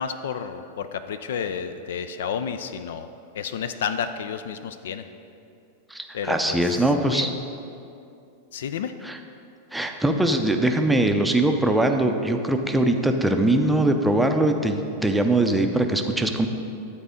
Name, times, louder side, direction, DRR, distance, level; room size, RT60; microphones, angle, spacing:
voice 1, 0.0-3.1 3.3-5.1 6.1-7.3 8.5-9.0, left 7 dB, 60° left, 10 dB, 0.3 m, -31 dB
voice 2, 5.9-7.3 9.0-9.2 9.7-16.5, right 1 dB, 5° right, 4 dB, 0.5 m, -22 dB
10.0 x 4.2 x 5.0 m, 2.6 s
figure-of-eight pair, 90°, 0 cm